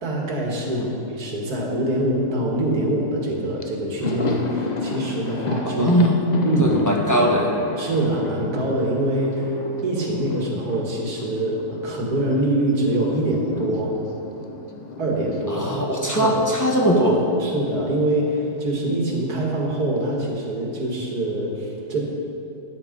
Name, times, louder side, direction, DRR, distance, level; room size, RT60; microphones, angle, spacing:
voice 1, 0.0-5.9 6.4-6.8 7.8-14.0 15.0-15.7 16.2-16.4 17.4-22.0, right 1 dB, 70° right, -2 dB, 2.5 m, -24 dB
Thunder, 3.2-3.3 3.6-12.4 12.7-17.0 17.2-17.4 18.6-19.3, left 3 dB, 45° left, 0.6 m, -32 dB
voice 2, 5.6-6.2 6.6-7.5 15.5-17.2, equal, 10° left, -2 dB, 1.2 m, -20 dB
12.0 x 9.6 x 5.3 m, 3.0 s
omnidirectional pair, 1.7 m